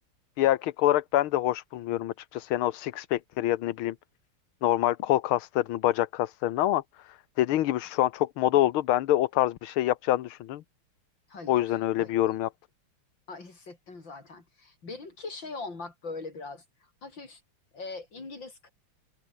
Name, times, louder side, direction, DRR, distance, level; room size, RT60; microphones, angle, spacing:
voice 1, 0.4-4.0 4.6-10.6 11.5-12.5, left 14 dB, 75° left, 1.7 m, -26 dB
voice 2, 11.3-11.6 12.0-12.2 13.3-17.4 17.7-18.7, left 3 dB, 55° left, 5.6 m, -41 dB
open air
omnidirectional pair, 2.4 m